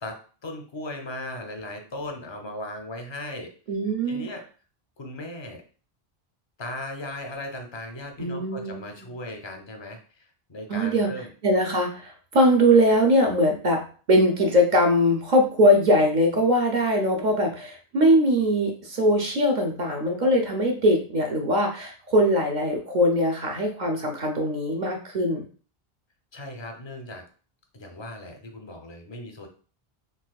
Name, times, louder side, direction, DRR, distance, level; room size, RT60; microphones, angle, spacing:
voice 1, 0.0-3.5 4.1-4.5 5.0-5.6 6.6-11.3 26.3-27.2 27.7-29.5, left 1 dB, 35° left, 3 dB, 0.5 m, -37 dB
voice 2, 3.7-4.3 8.2-8.9 10.7-11.1 11.4-13.8 14.1-25.5, equal, 55° right, 2 dB, 0.7 m, -21 dB
3.9 x 2.3 x 2.3 m, 0.40 s
omnidirectional pair, 1.0 m